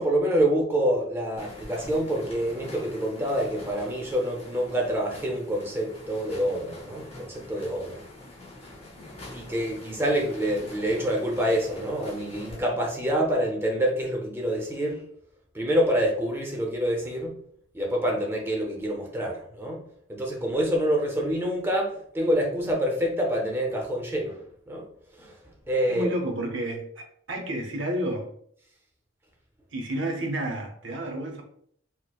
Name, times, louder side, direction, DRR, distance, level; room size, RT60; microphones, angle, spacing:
voice 1, 0.0-8.0 9.0-15.0 15.5-17.4 17.7-19.8 20.1-24.4 24.7-24.9 25.2-25.4 25.7-26.1, equal, 10° right, 0 dB, 0.6 m, -27 dB
sound 1, 1.4-12.6, left 1 dB, 30° left, 0.7 m, -44 dB
voice 2, 25.9-28.3 29.7-31.4, right 1 dB, 65° right, 3 dB, 0.7 m, -30 dB
4.3 x 2.0 x 2.3 m, 0.64 s
head